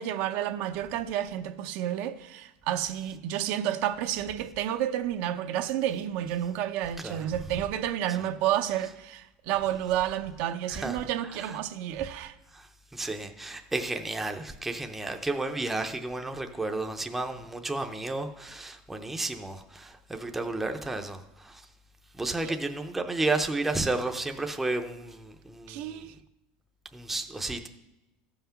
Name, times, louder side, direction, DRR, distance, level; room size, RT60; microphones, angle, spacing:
voice 1, 0.0-12.3 22.4-22.6 25.7-26.1, right 11 dB, 60° right, 0.6 m, -30 dB
voice 2, 12.5-21.6 22.2-26.0 26.9-27.7, right 2 dB, 5° right, 0.6 m, -32 dB
13.5 x 5.7 x 5.7 m
supercardioid pair, 150°, 3 cm